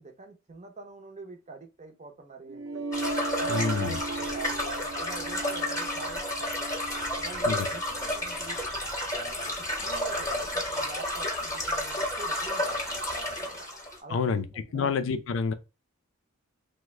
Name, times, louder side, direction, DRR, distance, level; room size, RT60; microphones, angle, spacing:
voice 1, 0.0-2.8 3.4-6.7 7.0-8.6 9.1-9.5 9.8-13.7 14.0-15.0, right 4 dB, 35° right, 0.6 m, -45 dB
sound 1, 2.5-8.5, right 2 dB, 85° right, 0.6 m, -36 dB
sound 2, 2.9-14.0, left 1 dB, 15° left, 0.8 m, -31 dB
voice 2, 3.5-4.0 7.5-7.7 14.1-14.5 14.7-15.5, left 5 dB, 65° left, 0.4 m, -28 dB
3.2 x 2.1 x 3.1 m
head